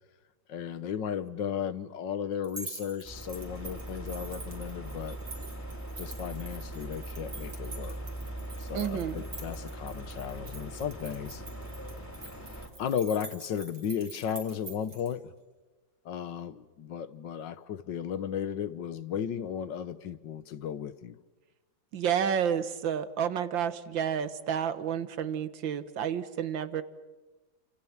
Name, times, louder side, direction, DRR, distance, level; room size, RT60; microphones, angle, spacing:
voice 1, 0.5-5.2 6.0-8.0 8.6-11.4 12.4-15.3 16.1-21.2, left 8 dB, 75° left, 1.8 m, -35 dB
sound 1, 2.4-15.1, right 3 dB, 60° right, 4.2 m, -46 dB
sound 2, 3.0-12.7, right 1 dB, 10° left, 2.9 m, -40 dB
voice 2, 8.7-9.2 21.9-26.8, right 8 dB, 90° right, 2.0 m, -30 dB
29.5 x 26.5 x 7.4 m
omnidirectional pair, 2.0 m